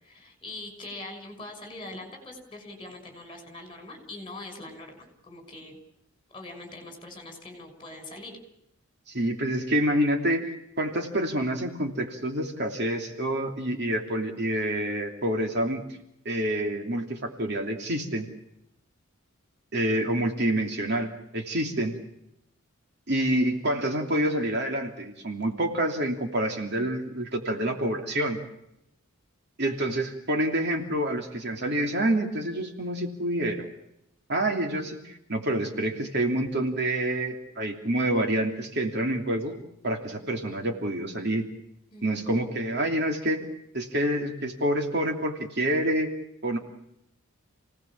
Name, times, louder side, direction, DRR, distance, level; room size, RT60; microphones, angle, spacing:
voice 1, 0.0-5.8 6.3-8.3 41.9-42.4, left 2 dB, 20° left, 4 dB, 5.9 m, -42 dB
voice 2, 9.1-15.8 16.2-18.3 19.7-22.0 23.1-28.4 29.6-33.7 34.3-39.5 39.8-41.5 42.0-43.4 43.7-46.1 46.4-46.6, right 1 dB, 50° right, 3 dB, 3.0 m, -27 dB
29.5 x 18.5 x 7.4 m, 0.81 s
head